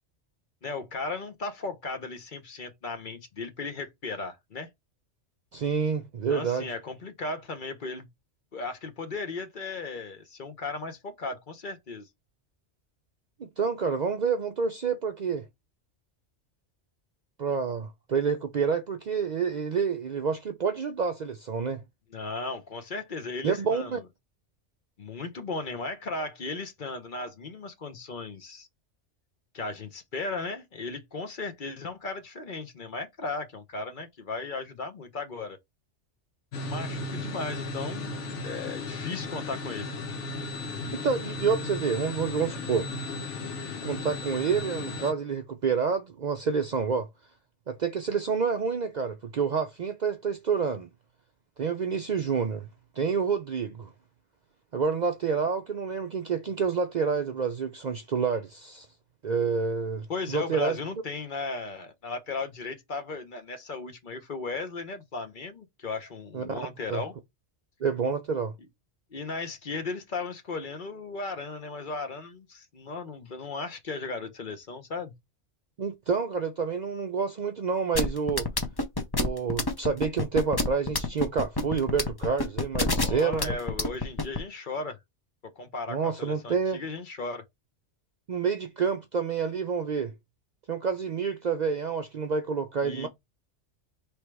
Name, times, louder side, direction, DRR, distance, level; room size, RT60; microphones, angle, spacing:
voice 1, 0.6-4.7 6.3-8.1 8.5-12.1 22.1-24.0 25.0-28.7 29.5-35.6 36.7-38.1 38.4-40.0 60.1-67.1 69.1-75.1 82.9-85.0 85.6-87.4 92.8-93.1, left 3 dB, 50° left, 0.9 m, -36 dB
voice 2, 5.5-6.7 13.4-15.5 17.4-21.8 23.4-24.0 40.9-42.9 43.8-47.1 47.7-50.9 51.6-52.7 53.0-53.9 54.7-58.9 59.2-60.8 66.3-67.0 67.8-68.5 75.8-78.5 79.2-83.6 85.9-86.8 88.3-90.1 90.7-93.1, right 5 dB, 55° right, 0.5 m, -28 dB
sound 1, 36.5-45.1, left 3 dB, 85° left, 1.2 m, -35 dB
sound 2, 77.9-84.4, left 2 dB, 25° left, 0.6 m, -27 dB
3.3 x 3.1 x 4.5 m
omnidirectional pair, 1.2 m